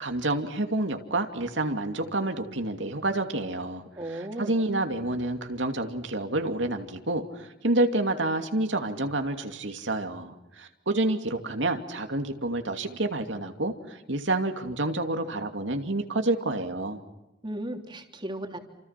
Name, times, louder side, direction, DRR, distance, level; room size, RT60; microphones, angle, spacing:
voice 1, 0.0-3.8 4.1-17.0, right 2 dB, 75° right, 5 dB, 2.6 m, -28 dB
voice 2, 4.0-4.6 17.4-18.6, right 1 dB, 25° right, 3 dB, 3.4 m, -35 dB
29.5 x 28.0 x 5.9 m, 0.97 s
head